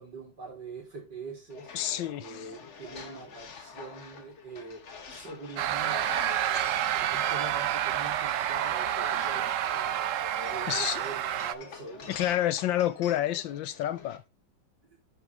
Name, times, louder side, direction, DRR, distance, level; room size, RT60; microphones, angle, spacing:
voice 1, 0.0-4.8 5.1-6.4 6.9-12.2 14.9-15.0, right 3 dB, 65° right, 4.9 m, -44 dB
sound 1, 1.5-14.2, left 6 dB, 45° left, 1.3 m, -46 dB
voice 2, 1.7-2.5 6.5-6.7 7.1-7.2 10.7-11.0 12.1-14.2, left 12 dB, 80° left, 1.6 m, -29 dB
sound 2, 5.6-11.5, right 11 dB, 85° right, 0.7 m, -29 dB
11.0 x 6.1 x 3.5 m
omnidirectional pair, 2.0 m